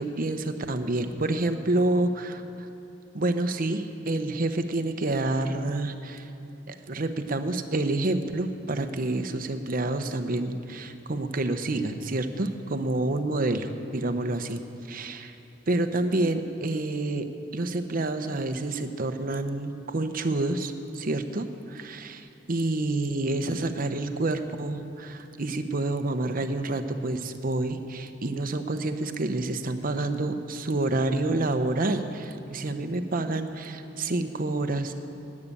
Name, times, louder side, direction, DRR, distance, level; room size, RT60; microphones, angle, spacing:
voice 1, 0.0-2.4 3.1-6.2 6.7-14.6 14.9-15.3 15.7-17.2 17.5-34.9, right 2 dB, 50° right, 8 dB, 0.8 m, -28 dB
12.5 x 9.6 x 8.7 m, 2.8 s
head